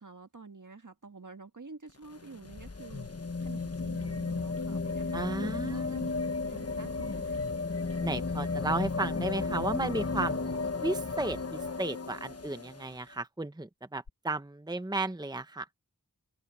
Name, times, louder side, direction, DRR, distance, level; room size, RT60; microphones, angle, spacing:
voice 1, 0.0-3.1 3.4-6.1 6.5-7.5, right 4 dB, 55° right, 1.8 m, -48 dB
sound 1, 1.9-12.9 14.1-14.2, left 3 dB, 40° left, 1.2 m, -34 dB
voice 2, 5.1-6.1 8.0-10.4 10.8-15.7, right 2 dB, 10° right, 1.0 m, -34 dB
wide cardioid pair, 55°, 36 cm